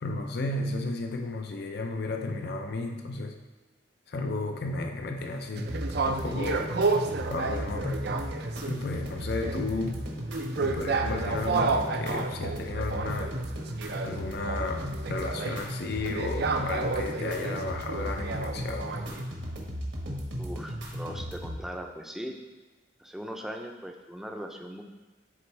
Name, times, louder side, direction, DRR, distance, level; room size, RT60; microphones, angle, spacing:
voice 1, 0.0-3.3 4.1-5.7 6.2-6.7 7.3-8.0 8.7-10.1 10.6-13.3 14.0-18.9, left 3 dB, 60° left, 4 dB, 0.6 m, -33 dB
sound 1, 5.6-8.9 9.2-19.2, right 4 dB, 60° right, 0.5 m, -31 dB
sound 2, 5.6-21.6, equal, 75° right, 1.4 m, -35 dB
voice 2, 20.4-22.3 23.0-24.8, equal, ahead, 3 dB, 0.6 m, -39 dB
11.0 x 4.3 x 3.3 m, 1.1 s
head